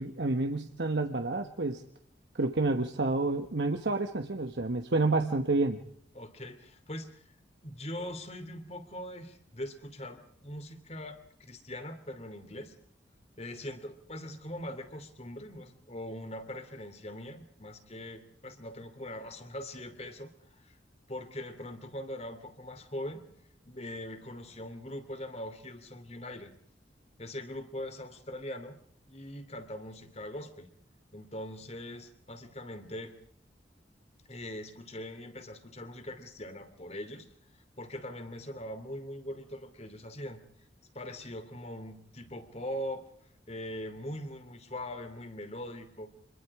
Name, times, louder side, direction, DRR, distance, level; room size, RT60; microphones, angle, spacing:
voice 1, 0.0-1.8 2.4-5.8, right 2 dB, 70° right, 5 dB, 1.3 m, -29 dB
voice 2, 6.1-7.2 7.6-12.7 13.4-20.8 21.1-23.3 23.6-26.5 27.2-28.8 29.1-30.7 31.1-33.1 34.3-37.3 37.8-40.4 40.9-43.0 43.5-46.1, left 1 dB, 35° left, 9 dB, 2.8 m, -41 dB
26.0 x 22.0 x 4.8 m, 0.67 s
head